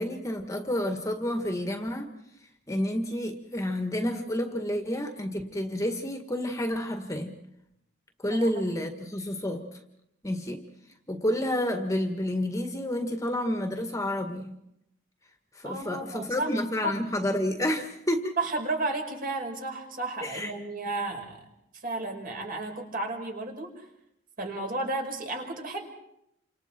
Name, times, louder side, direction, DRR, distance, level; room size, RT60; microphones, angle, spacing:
voice 1, 0.0-2.1 2.7-7.3 8.2-9.7 10.2-10.6 11.1-14.5 15.6-18.4 20.2-20.5, left 1 dB, 15° left, 5 dB, 1.8 m, -29 dB
voice 2, 15.6-16.5 16.8-17.0 18.4-21.4 21.8-23.8 24.4-25.9, right 2 dB, 45° right, 2 dB, 5.3 m, -33 dB
30.0 x 27.0 x 4.5 m, 0.79 s
head